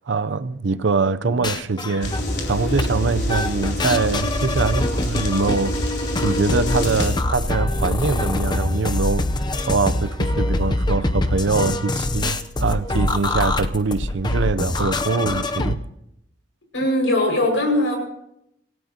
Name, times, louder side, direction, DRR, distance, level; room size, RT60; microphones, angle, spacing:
voice 1, 0.1-2.2 2.5-5.8 6.2-9.3 9.6-15.8, right 4 dB, 80° right, 0.6 m, -23 dB
sound 1, 1.2-2.5 2.8-2.9 3.3-15.8, left 2 dB, 25° left, 0.7 m, -24 dB
sound 2, 2.0-7.1, left 1 dB, 60° left, 3.7 m, -25 dB
voice 2, 16.7-18.0, left 1 dB, 90° left, 5.7 m, -20 dB
26.5 x 16.5 x 2.9 m
head